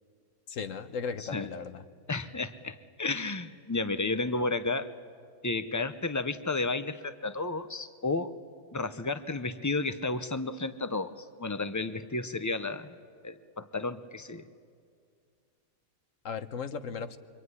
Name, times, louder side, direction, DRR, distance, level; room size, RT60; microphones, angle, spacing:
voice 1, 0.5-1.9 16.2-17.2, left 6 dB, 65° left, 10 dB, 1.3 m, -36 dB
voice 2, 2.1-4.9 5.4-8.3 8.7-13.0 13.2-14.5, left 3 dB, 25° left, 12 dB, 0.4 m, -32 dB
25.0 x 24.5 x 9.7 m, 2.2 s
omnidirectional pair, 1.5 m